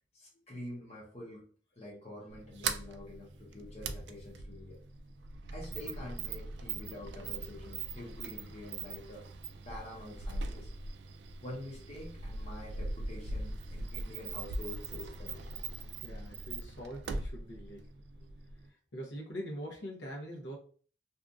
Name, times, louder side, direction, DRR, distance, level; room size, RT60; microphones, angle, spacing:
voice 1, 0.1-1.5 1.8-4.8 5.5-9.3 9.6-10.7 11.4-15.6 18.2-18.3, left 1 dB, 35° left, -2 dB, 0.7 m, -47 dB
Sliding door, 2.3-18.7, right 3 dB, 65° right, 0.3 m, -41 dB
voice 2, 16.0-17.9 18.9-20.6, equal, 70° left, 0 dB, 0.9 m, -43 dB
2.7 x 2.4 x 2.4 m, 0.42 s
head